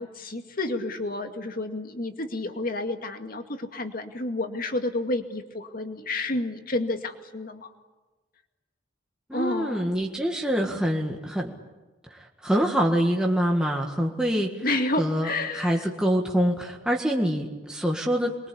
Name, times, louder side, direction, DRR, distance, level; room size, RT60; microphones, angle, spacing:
voice 1, 0.0-7.7 9.3-9.9 14.6-15.9, left 2 dB, 50° left, 5 dB, 2.2 m, -30 dB
voice 2, 9.3-11.5 12.1-14.5 15.0-15.3 15.5-18.5, equal, 5° right, -1 dB, 1.8 m, -25 dB
27.0 x 22.5 x 8.6 m, 1.2 s
head